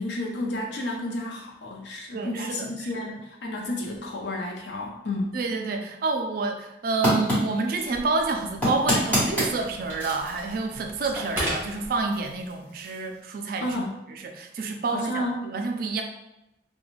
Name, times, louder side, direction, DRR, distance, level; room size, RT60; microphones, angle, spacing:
voice 1, 0.0-5.4 13.6-13.9 14.9-15.5, left 1 dB, 70° left, 0 dB, 0.6 m, -31 dB
voice 2, 2.1-2.9 5.3-13.8 14.3-16.0, right 3 dB, 50° right, 3 dB, 0.3 m, -28 dB
sound 1, 6.9-13.2, equal, 10° left, 1.1 m, -30 dB
Telephone, 7.8-12.5, equal, 10° right, 0.9 m, -37 dB
2.4 x 2.2 x 3.1 m, 0.88 s
head